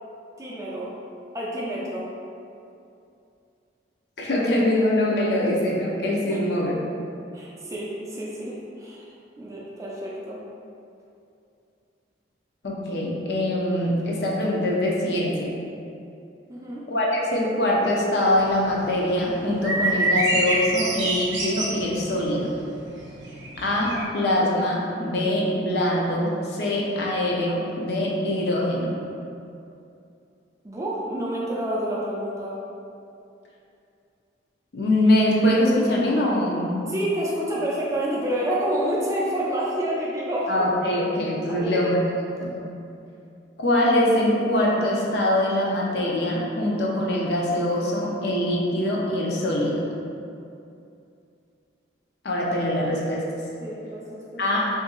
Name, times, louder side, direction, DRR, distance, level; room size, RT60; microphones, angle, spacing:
voice 1, 0.4-0.9 1.3-2.1 6.3-6.4 7.3-9.1 9.4-10.4 16.5-16.9 30.6-32.6 36.9-40.7 41.5-41.8 53.6-54.4, right 1 dB, 15° right, -5 dB, 0.4 m, -28 dB
voice 2, 4.2-7.0 12.6-15.6 16.9-22.6 23.6-28.9 34.7-36.9 40.5-42.0 42.4-42.6 43.6-49.9 52.2-53.2 54.4-54.7, left 1 dB, 60° left, -4 dB, 0.5 m, -23 dB
sound 1, 18.3-24.0, right 1 dB, 70° right, 0.6 m, -26 dB
2.8 x 2.6 x 3.8 m, 2.6 s
head